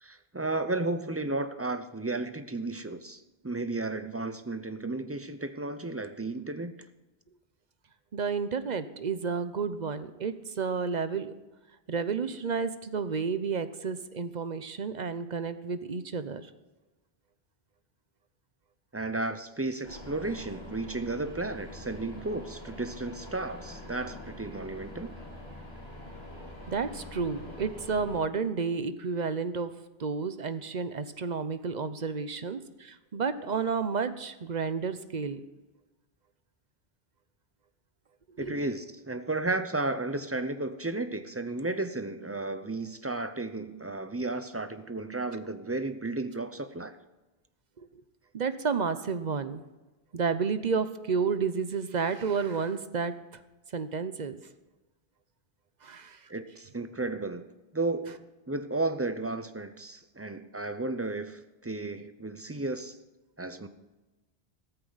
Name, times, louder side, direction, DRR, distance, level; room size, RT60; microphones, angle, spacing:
voice 1, 0.0-6.7 18.9-25.2 38.4-47.0 56.3-57.5 57.7-63.0 63.4-63.7, right 2 dB, 15° right, 10 dB, 0.5 m, -33 dB
voice 2, 8.1-11.3 11.9-16.5 26.7-29.7 30.0-35.4 38.4-38.6 48.3-49.6 50.1-53.1 53.7-54.4 55.8-56.2, right 5 dB, 50° right, 12 dB, 0.8 m, -31 dB
sound 1, 19.8-28.2, left 1 dB, 75° left, 3.8 m, -44 dB
15.0 x 13.5 x 4.0 m, 1.1 s
omnidirectional pair, 1.1 m